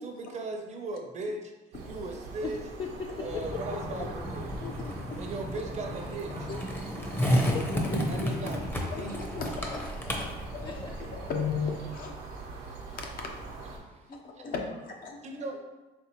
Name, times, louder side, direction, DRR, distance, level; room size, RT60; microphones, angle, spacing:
voice 1, 0.0-1.5 1.8-2.6 3.2-4.5 5.2-6.5 8.1-9.2 13.8-14.1 14.4-14.5 15.2-15.6, right 3 dB, 45° right, 3 dB, 0.7 m, -38 dB
sound 1, 1.7-13.8, right 3 dB, 85° right, 0.9 m, -43 dB
voice 2, 2.8-3.8 7.2-8.9 10.6-11.3 12.6-13.0 14.1-14.8, left 5 dB, 30° left, 2 dB, 0.4 m, -40 dB
Skateboard, 3.3-11.3, equal, 10° left, 0.7 m, -32 dB
voice 3, 8.9-10.8 11.3-12.1 12.9-13.1 14.4-15.2, left 5 dB, 60° left, 2 dB, 0.8 m, -35 dB
4.3 x 3.3 x 3.0 m, 1.2 s
cardioid pair, 110°, 17 cm